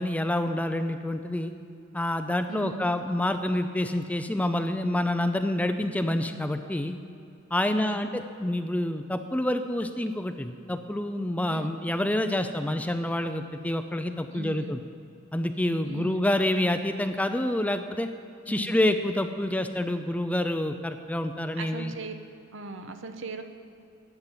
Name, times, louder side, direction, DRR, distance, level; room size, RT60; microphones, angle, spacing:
voice 1, 0.0-1.5 1.9-7.0 7.5-14.8 15.3-18.1 18.5-21.9, left 1 dB, 5° left, 8 dB, 0.4 m, -27 dB
voice 2, 2.5-2.9 7.7-8.0 11.5-11.7 14.3-14.8 15.8-16.3 18.5-18.8 21.6-22.1 22.5-23.4, right 3 dB, 65° right, 7 dB, 0.9 m, -39 dB
10.5 x 9.3 x 7.4 m, 2.5 s
head